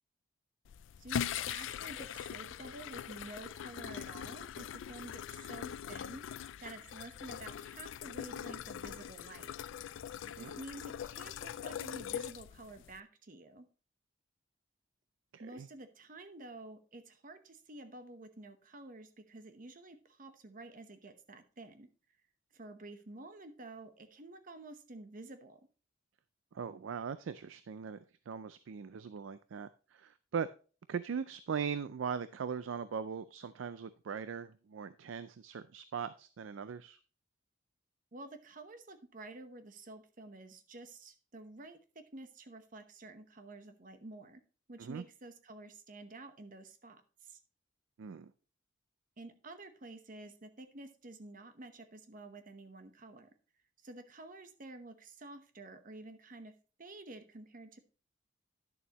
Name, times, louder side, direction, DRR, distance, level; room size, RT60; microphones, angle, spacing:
sound 1, 0.6-13.0, left 9 dB, 75° left, 0.3 m, -42 dB
voice 1, 1.0-6.2 6.6-9.5 10.4-13.7 15.4-21.9 22.5-25.6 38.1-44.4 44.7-47.4 49.2-53.3 53.8-56.5 56.8-57.8, right 2 dB, 45° right, 8 dB, 1.0 m, -50 dB
voice 2, 10.2-10.5 15.3-15.7 26.5-28.0 28.3-30.5 30.9-37.0 44.8-45.0 48.0-48.3, right 6 dB, 85° right, 14 dB, 0.4 m, -40 dB
10.5 x 6.9 x 2.9 m, 0.37 s
head